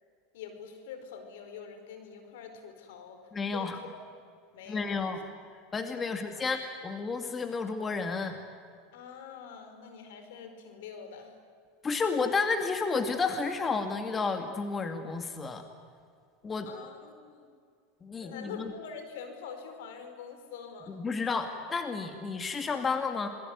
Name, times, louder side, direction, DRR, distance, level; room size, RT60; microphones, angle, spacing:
voice 1, 0.3-3.2 3.5-4.0 4.5-5.3 6.1-6.4 8.9-11.3 16.6-17.5 18.2-21.0, left 6 dB, 75° left, 7 dB, 4.8 m, -45 dB
voice 2, 3.3-3.8 4.7-5.2 5.7-8.4 11.8-15.6 16.4-16.7 18.0-18.7 20.9-23.3, left 4 dB, 25° left, 6 dB, 2.4 m, -31 dB
27.5 x 21.0 x 9.7 m, 2.1 s
supercardioid pair, 110°, 0 cm